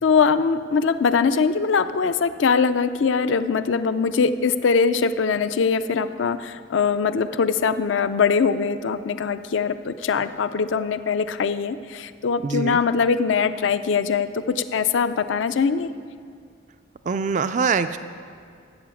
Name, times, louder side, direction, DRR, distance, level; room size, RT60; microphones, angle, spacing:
voice 1, 0.0-15.9, left 5 dB, 75° left, 12 dB, 0.4 m, -22 dB
voice 2, 12.4-12.8 17.1-18.0, right 5 dB, 40° right, 11 dB, 0.3 m, -23 dB
13.0 x 8.2 x 7.1 m, 2.3 s
head